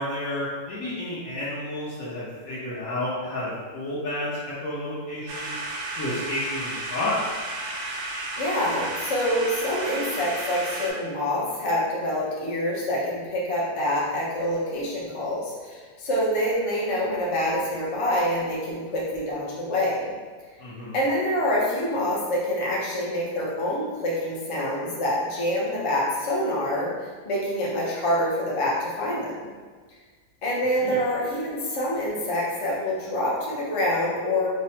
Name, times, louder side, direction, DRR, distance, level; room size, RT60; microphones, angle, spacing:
voice 1, 0.0-5.6 6.0-7.1 20.6-21.0 30.8-31.0, left 1 dB, 70° left, -9 dB, 1.2 m, -31 dB
sound 1, 5.3-10.9, right 2 dB, 85° right, 1.1 m, -33 dB
voice 2, 8.4-20.1 20.9-26.9 27.2-29.5 30.4-34.5, left 1 dB, 40° left, -5 dB, 0.5 m, -26 dB
4.7 x 2.1 x 2.8 m, 1.5 s
omnidirectional pair, 1.6 m